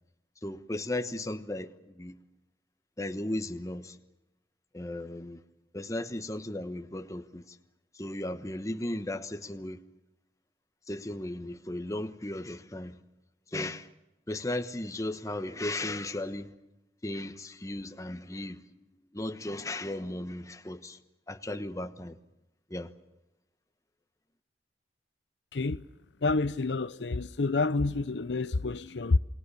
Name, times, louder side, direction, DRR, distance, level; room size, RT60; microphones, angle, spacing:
voice 1, 0.4-2.2 3.0-4.0 4.7-5.4 5.7-7.6 7.9-9.8 10.9-13.0 13.5-13.9 14.3-16.5 17.0-18.6 19.1-21.0 21.3-22.2 22.7-22.9, left 1 dB, 20° left, 1.1 m, -36 dB
voice 2, 25.5-25.8 26.2-29.2, left 3 dB, 85° left, 0.7 m, -28 dB
28.5 x 20.5 x 6.9 m
head